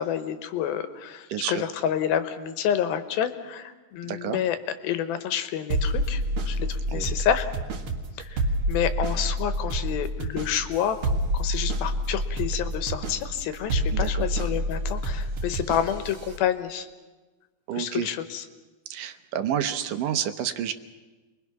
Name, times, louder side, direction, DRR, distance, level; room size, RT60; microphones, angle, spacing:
voice 1, 0.0-4.6 4.8-7.5 8.2-8.4 8.7-16.9 17.7-18.4, left 9 dB, 85° left, 10 dB, 2.9 m, -29 dB
voice 2, 1.3-1.6 4.1-4.4 6.9-7.2 13.9-14.3 17.7-18.1 18.9-20.7, right 10 dB, 70° right, 9 dB, 2.3 m, -29 dB
sound 1, 5.7-16.4, right 1 dB, 45° right, 1.9 m, -28 dB
28.5 x 22.0 x 5.9 m, 1.2 s
omnidirectional pair, 4.2 m